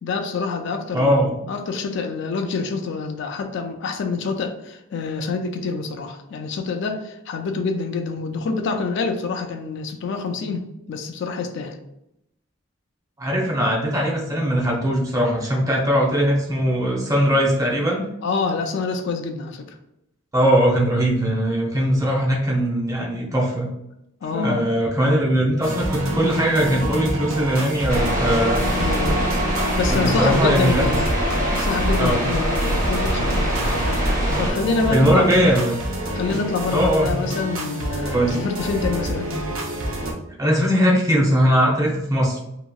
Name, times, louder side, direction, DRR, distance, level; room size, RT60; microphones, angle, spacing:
voice 1, 0.0-11.8 18.2-19.8 24.2-24.6 28.7-29.4 29.8-31.1 31.5-33.8 34.4-35.5 36.1-39.4, left 4 dB, 60° left, 6 dB, 0.3 m, -26 dB
voice 2, 0.9-1.3 13.2-18.0 20.3-23.7 24.3-28.7 29.9-30.8 32.0-32.2 34.9-35.7 36.7-37.3 38.1-38.4 40.4-42.4, equal, 15° right, -2 dB, 0.6 m, -20 dB
sound 1, 25.6-40.1, right 1 dB, 80° right, 0.7 m, -27 dB
sound 2, 27.9-34.5, equal, 40° right, 1.0 m, -24 dB
2.9 x 2.8 x 2.2 m, 0.82 s
head